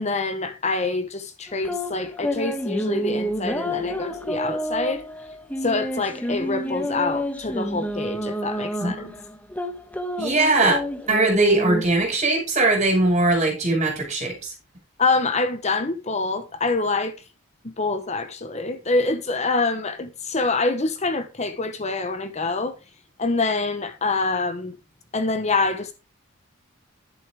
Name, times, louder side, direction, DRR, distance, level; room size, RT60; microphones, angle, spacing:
voice 1, 0.0-5.0 5.6-9.1 15.0-17.1 17.6-22.8 23.2-24.7 25.1-25.9, left 3 dB, 35° left, 1.0 m, -25 dB
sound 1, 1.5-11.8, equal, 5° left, 1.2 m, -29 dB
voice 2, 8.8-9.2 10.2-10.8 11.1-14.3, right 2 dB, 35° right, 5.7 m, -20 dB
11.0 x 9.2 x 3.6 m
head